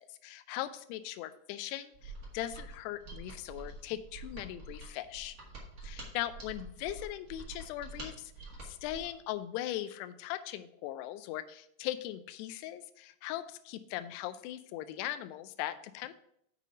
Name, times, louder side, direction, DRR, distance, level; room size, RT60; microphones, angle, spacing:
voice 1, 0.0-5.4 5.8-8.3 8.6-16.1, left 13 dB, 85° left, 11 dB, 2.5 m, -39 dB
Mechanisms, 1.9-9.1, right 2 dB, 60° right, 0.9 m, -47 dB
7.4 x 5.4 x 4.8 m, 0.71 s
omnidirectional pair, 5.0 m